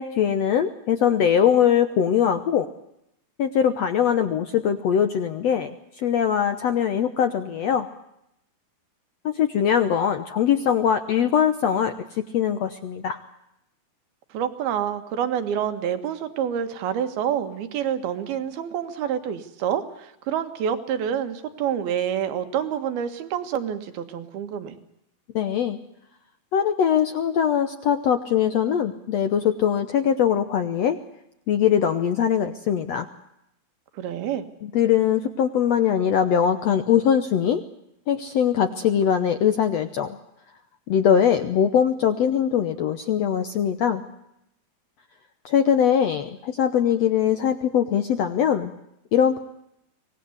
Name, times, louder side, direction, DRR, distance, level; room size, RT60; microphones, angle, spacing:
voice 1, 0.0-2.7 3.4-5.7 6.0-7.9 9.2-13.2 25.3-25.8 26.5-31.0 31.5-33.1 34.7-37.6 38.1-40.2 40.9-44.0 45.4-48.7 49.1-49.4, left 8 dB, 80° left, 9 dB, 1.5 m, -21 dB
voice 2, 14.3-24.8 33.9-34.5, right 9 dB, 80° right, 9 dB, 3.5 m, -27 dB
24.5 x 19.0 x 8.0 m, 0.81 s
omnidirectional pair, 4.4 m